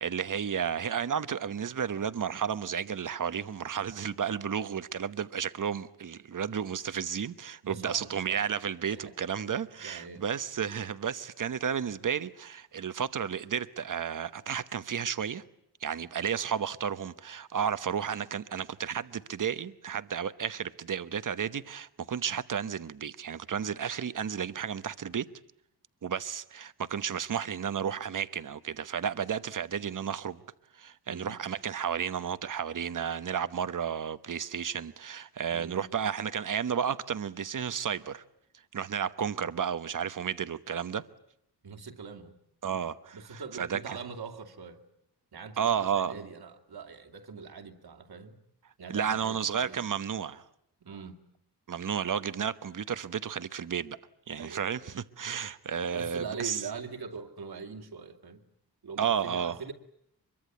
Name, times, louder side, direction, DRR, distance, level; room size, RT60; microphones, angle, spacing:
voice 1, 0.0-15.4 15.8-25.3 26.0-30.4 30.7-38.2 38.7-41.0 42.6-43.8 45.6-46.2 48.9-50.4 51.7-54.0 54.3-56.6 59.0-59.6, right 7 dB, 50° right, 1.1 m, -32 dB
voice 2, 7.6-8.4 8.9-9.2 9.8-10.2 31.1-31.4 35.5-35.9 41.6-42.3 42.6-42.8 43.1-44.8 45.3-48.4 48.8-49.8 50.8-51.2 54.4-54.9 55.9-58.4 58.8-59.7, right 5 dB, 70° right, 2.6 m, -42 dB
24.5 x 23.0 x 9.2 m
wide cardioid pair, 95°, 40 cm